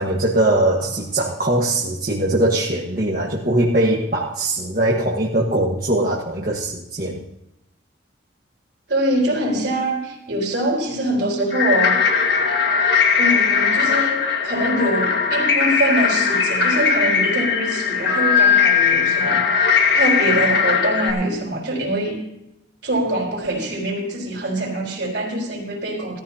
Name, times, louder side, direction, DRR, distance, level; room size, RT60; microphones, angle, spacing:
voice 1, 0.0-7.2, right 1 dB, 45° right, -4 dB, 1.4 m, -21 dB
voice 2, 8.9-12.0 13.2-14.2 14.4-22.2 22.8-26.2, right 1 dB, 65° right, -1 dB, 4.2 m, -24 dB
sound 1, 11.5-21.1, left 6 dB, 65° left, 1.7 m, -19 dB
18.0 x 13.5 x 2.8 m, 0.89 s
head